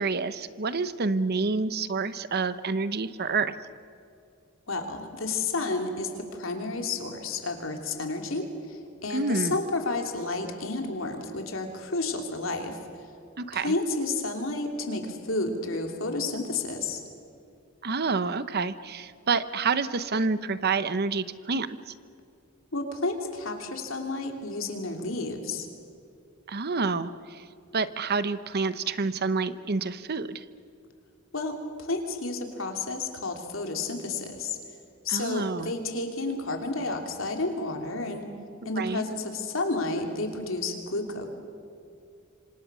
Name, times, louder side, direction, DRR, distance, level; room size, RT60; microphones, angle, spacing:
voice 1, 0.0-3.5 9.1-9.6 13.4-13.7 17.8-21.9 26.5-27.4 27.7-30.4 35.1-35.7 38.8-39.0, right 4 dB, 50° right, 13 dB, 0.9 m, -28 dB
voice 2, 4.7-12.8 13.5-17.0 22.7-25.7 31.3-34.6 35.0-38.3 38.6-41.3, left 3 dB, 75° left, 3 dB, 3.2 m, -31 dB
26.5 x 26.0 x 6.2 m, 2.5 s
head